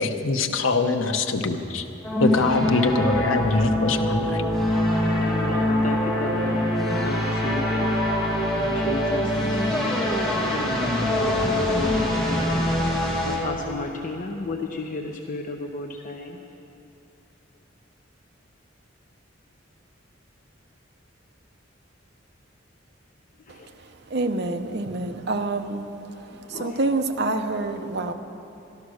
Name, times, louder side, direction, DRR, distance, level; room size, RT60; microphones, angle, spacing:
voice 1, 0.0-1.8 2.2-4.4, left 3 dB, 90° left, 6 dB, 0.9 m, -23 dB
sound 1, 2.0-13.4, left 1 dB, ahead, 2.2 m, -24 dB
voice 2, 5.1-6.7 6.9-7.9 8.5-9.9 11.1-16.4 23.5-23.7 26.2-26.8, left 2 dB, 40° left, 2 dB, 0.8 m, -34 dB
voice 3, 24.1-25.8 26.5-28.1, right 2 dB, 55° right, 7 dB, 0.8 m, -27 dB
13.0 x 12.0 x 6.3 m, 2.8 s
head